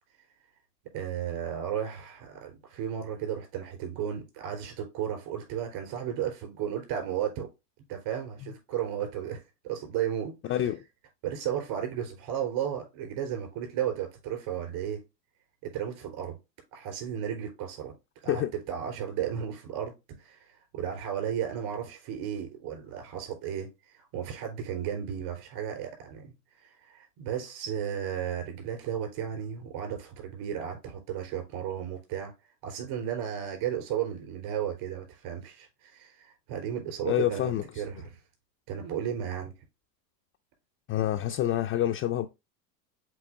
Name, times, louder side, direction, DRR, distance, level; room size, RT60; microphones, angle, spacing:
voice 1, 0.9-7.5 7.9-10.4 11.2-15.0 15.6-16.4 16.7-17.9 18.2-23.7 23.9-26.3 26.6-32.3 32.6-38.2 38.7-39.5, right 9 dB, 60° right, 4.1 m, -34 dB
voice 2, 10.5-10.8 18.3-18.5 37.0-37.6 40.9-42.3, left 12 dB, 30° left, 0.3 m, -27 dB
7.6 x 3.6 x 3.6 m
hypercardioid pair, 100°, 49 cm